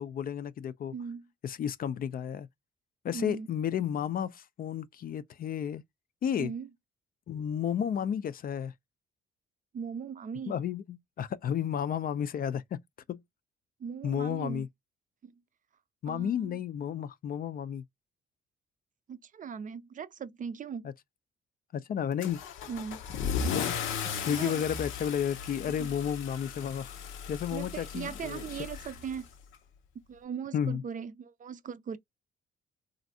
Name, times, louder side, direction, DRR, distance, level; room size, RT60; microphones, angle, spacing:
voice 1, 0.0-0.9 1.4-2.5 3.0-5.8 6.2-6.5 7.3-8.7 10.5-12.8 13.1-13.2 14.0-14.7 16.0-17.8 20.8-20.9 21.7-22.4 23.5-23.8 24.0-27.0 27.3-28.9 30.5-30.8, left 9 dB, 45° left, 0.4 m, -32 dB
voice 2, 0.9-1.3 3.1-3.5 6.4-6.7 9.7-10.6 13.8-14.6 15.2-15.3 16.1-16.6 19.1-20.9 22.7-23.0 24.2-24.6 25.8-25.9 27.5-29.3 30.1-32.0, right 7 dB, 40° right, 0.4 m, -39 dB
Car / Engine starting / Accelerating revving vroom, 22.2-29.5, left 6 dB, 90° left, 0.7 m, -36 dB
3.1 x 2.5 x 2.6 m
cardioid pair, 90°, 20 cm